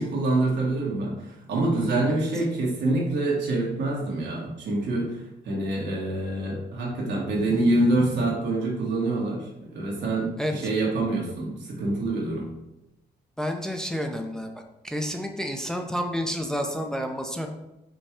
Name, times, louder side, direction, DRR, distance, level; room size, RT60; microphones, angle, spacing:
voice 1, 0.0-12.5, right 2 dB, 85° right, -3 dB, 1.4 m, -26 dB
voice 2, 7.4-7.8 8.1-8.4 10.4-10.5 13.4-14.5 14.8-17.5, equal, 5° left, 3 dB, 0.5 m, -30 dB
5.3 x 2.3 x 4.4 m, 0.91 s
cardioid pair, 80°, 17 cm